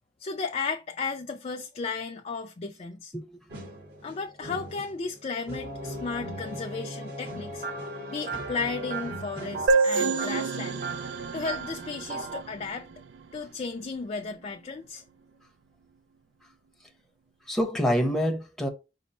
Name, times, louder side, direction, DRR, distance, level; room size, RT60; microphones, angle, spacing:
voice 1, 0.2-3.1 4.0-7.6 8.1-10.8 11.3-12.9 13.3-15.0, left 4 dB, 35° left, 0.4 m, -34 dB
voice 2, 3.1-3.4 17.5-18.7, equal, ahead, 0.7 m, -26 dB
sound 1, 3.5-9.6, equal, 65° right, 1.6 m, -39 dB
sound 2, 7.6-12.4, right 4 dB, 35° right, 0.7 m, -38 dB
sound 3, 9.7-13.2, right 4 dB, 85° right, 0.4 m, -28 dB
5.2 x 2.0 x 4.1 m
head